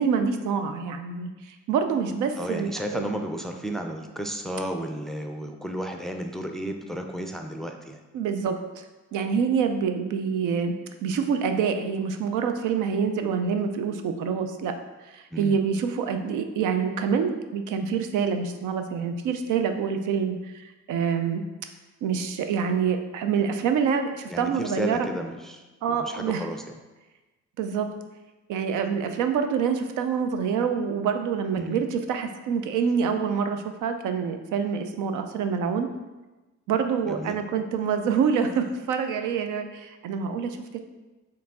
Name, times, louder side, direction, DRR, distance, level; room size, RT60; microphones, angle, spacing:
voice 1, 0.0-3.0 8.1-8.8 9.1-10.7 11.0-14.7 15.0-21.4 22.0-25.1 25.8-26.5 27.6-27.9 28.5-35.9 36.7-40.8, right 6 dB, 85° right, 7 dB, 0.5 m, -26 dB
voice 2, 2.4-8.0 15.3-15.6 24.3-26.8 31.5-31.8 37.1-37.4, equal, ahead, 4 dB, 0.4 m, -33 dB
4.7 x 3.1 x 3.6 m, 1.1 s
cardioid pair, 90°, 30 cm